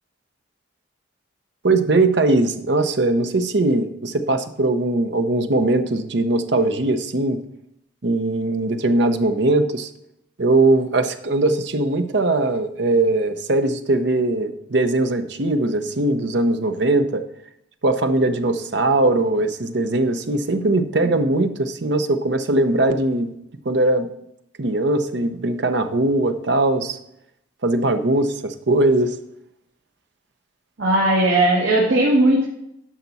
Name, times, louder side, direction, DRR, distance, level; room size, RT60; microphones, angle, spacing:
voice 1, 1.6-7.4 8.0-9.9 10.4-17.2 17.8-23.3 23.6-24.1 24.6-27.0 27.6-29.2, right 2 dB, 60° right, 8 dB, 0.7 m, -20 dB
voice 2, 30.8-32.4, right 1 dB, 80° right, -5 dB, 2.1 m, -17 dB
11.0 x 5.9 x 4.1 m, 0.78 s
head